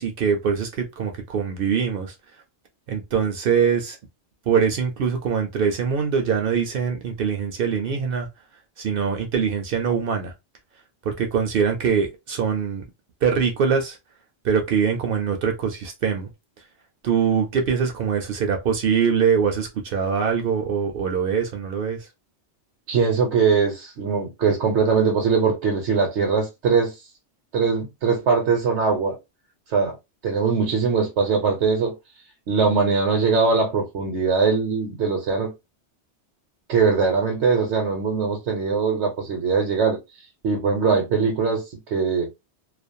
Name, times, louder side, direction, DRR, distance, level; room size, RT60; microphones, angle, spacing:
voice 1, 0.0-2.1 2.9-4.0 4.5-8.3 8.8-10.3 11.1-12.9 13.2-14.0 14.4-16.3 17.0-22.1, right 6 dB, 65° right, 0.7 m, -23 dB
voice 2, 22.9-27.0 27.5-29.2 29.7-30.0 30.2-32.0 32.5-35.5 36.7-40.0 40.4-42.3, right 5 dB, 80° right, 1.0 m, -21 dB
2.4 x 2.0 x 2.6 m
omnidirectional pair, 1.2 m